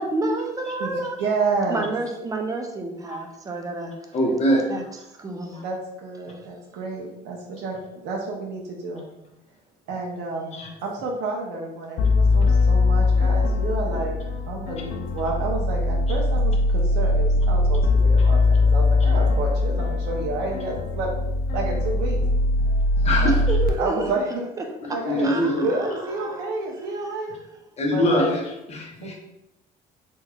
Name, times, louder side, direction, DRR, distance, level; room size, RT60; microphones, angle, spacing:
voice 1, 0.0-1.2 1.7-3.9 4.7-4.8 5.2-5.6 10.4-10.7 23.3-24.1 24.6-24.7 25.2-26.5, right 2 dB, 20° right, 3 dB, 0.5 m, -30 dB
voice 2, 0.8-1.9 5.6-7.8 8.0-9.0 9.9-14.1 14.5-21.1 21.5-22.2 23.0-23.4 23.8-25.3 25.6-27.3 27.9-28.3 29.0-29.1, right 3 dB, 90° right, -1 dB, 0.6 m, -30 dB
voice 3, 4.1-4.6 5.5-5.6 10.5-10.7 12.3-12.4 18.2-18.3 22.6-23.6 24.8-25.7 27.8-28.4 28.7-29.1, equal, 40° left, -1 dB, 0.9 m, -24 dB
sound 1, 12.0-23.7, left 2 dB, 65° left, 0.4 m, -21 dB
3.6 x 3.0 x 2.3 m, 0.87 s
cardioid pair, 110°, 17 cm